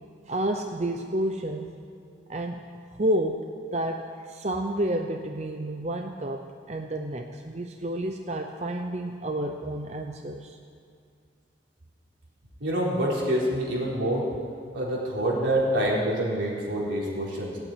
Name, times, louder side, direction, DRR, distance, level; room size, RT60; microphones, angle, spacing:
voice 1, 0.3-1.7 2.3-3.5 3.7-10.6, right 1 dB, 35° right, 4 dB, 0.7 m, -30 dB
voice 2, 12.6-14.3 14.7-17.6, right 1 dB, 85° right, -4 dB, 4.1 m, -26 dB
15.5 x 8.6 x 9.2 m, 2.4 s
head